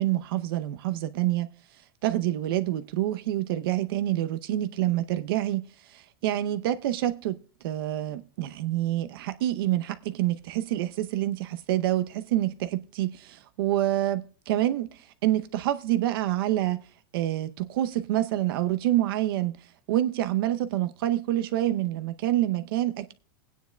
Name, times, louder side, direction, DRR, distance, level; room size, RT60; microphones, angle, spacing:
voice 1, 0.0-1.5 2.0-16.9 17.1-19.6 19.9-23.1, right 14 dB, 70° right, 0.7 m, -27 dB
18.5 x 9.4 x 2.2 m
supercardioid pair, 145°, 12 cm